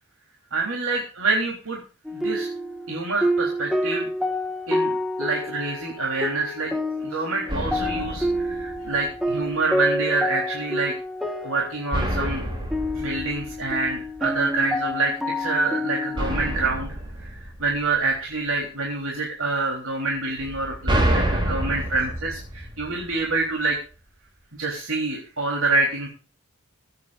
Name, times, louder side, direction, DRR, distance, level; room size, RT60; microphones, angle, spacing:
voice 1, 0.5-1.8 2.1-2.5 2.9-4.1 4.7-6.7 7.0-10.9 11.4-12.5 12.9-16.9 17.2-23.8 24.6-26.1, right 3 dB, 70° right, -1 dB, 3.7 m, -26 dB
sound 1, 2.0-16.7, left 1 dB, ahead, 1.4 m, -28 dB
sound 2, 7.5-9.4 11.9-14.3 16.2-18.4 20.4-23.4, right 1 dB, 20° right, 3.3 m, -28 dB
26.0 x 9.6 x 2.6 m, 0.37 s
head